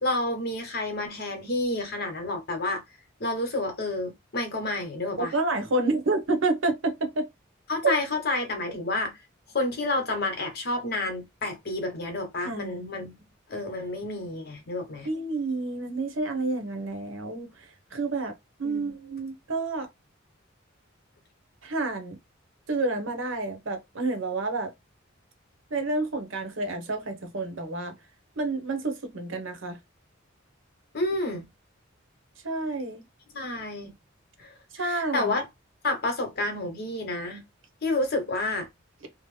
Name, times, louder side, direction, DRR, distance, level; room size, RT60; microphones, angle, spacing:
voice 1, 0.0-2.8 3.2-5.3 7.7-9.1 9.5-13.2 13.5-15.1 18.6-18.9 30.9-31.5 33.3-33.9 34.4-35.5 35.8-37.4 37.8-38.7, left 2 dB, 50° left, 1.0 m, -29 dB
voice 2, 5.2-7.3 7.8-8.0 12.4-13.1 15.0-18.3 18.6-19.9 21.6-22.2 22.7-24.7 25.7-28.0 28.4-29.8 32.4-33.0 34.7-35.4, right 2 dB, 70° right, 0.8 m, -29 dB
2.8 x 2.0 x 3.1 m
head